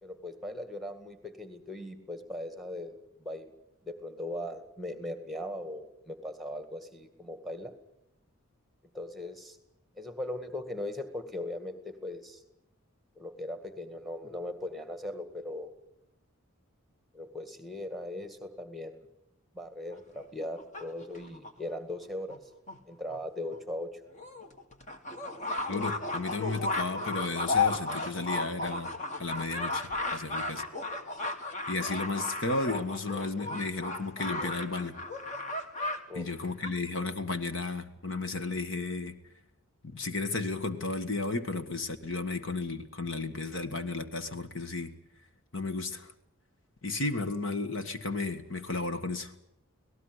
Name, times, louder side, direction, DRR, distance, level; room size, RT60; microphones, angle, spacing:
voice 1, 0.0-3.5 3.8-7.7 8.9-9.6 10.0-12.4 13.2-15.7 17.1-19.0 19.5-22.4 22.9-24.0 36.1-36.3, left 1 dB, ahead, 9 dB, 2.0 m, -39 dB
sound 1, 19.9-21.5 22.3-22.4 22.7-22.8 23.1-23.2 23.5-23.6 24.1-36.0 36.3-36.7, left 3 dB, 35° left, 2.1 m, -34 dB
voice 2, 25.7-28.9 29.2-30.6 31.7-35.0 36.1-39.2 39.8-44.9 45.5-46.1 46.8-49.3, left 3 dB, 55° left, 9 dB, 1.6 m, -33 dB
26.0 x 18.5 x 8.1 m, 0.82 s
head